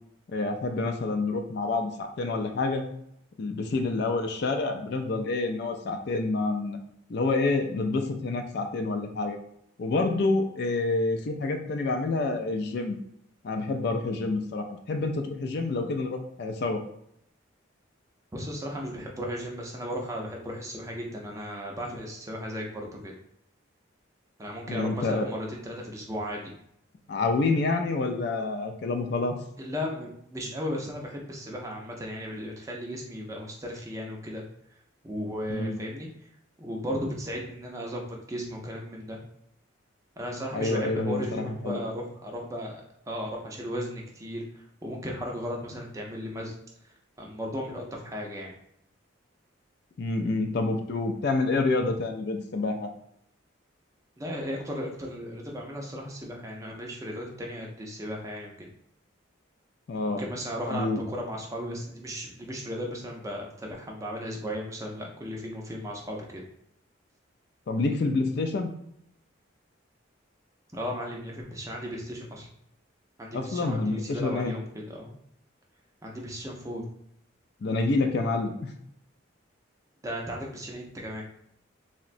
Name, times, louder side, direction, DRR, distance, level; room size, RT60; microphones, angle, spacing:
voice 1, 0.3-2.8 3.4-6.8 7.1-9.4 9.8-13.0 13.4-16.8 24.7-25.3 27.1-29.4 35.5-35.8 40.5-41.8 50.0-52.9 59.9-60.2 60.7-61.0 67.7-68.7 73.3-74.5 77.6-78.7, left 3 dB, 55° left, 4 dB, 0.3 m, -28 dB
voice 2, 18.3-23.1 24.4-26.5 29.6-34.4 35.0-36.1 36.6-39.2 40.2-46.5 46.8-46.9 47.2-48.5 54.2-58.7 60.2-66.4 70.7-72.5 73.2-75.1 76.0-76.8 80.0-81.2, equal, 15° right, -1 dB, 0.5 m, -35 dB
3.7 x 2.1 x 2.5 m, 0.73 s
head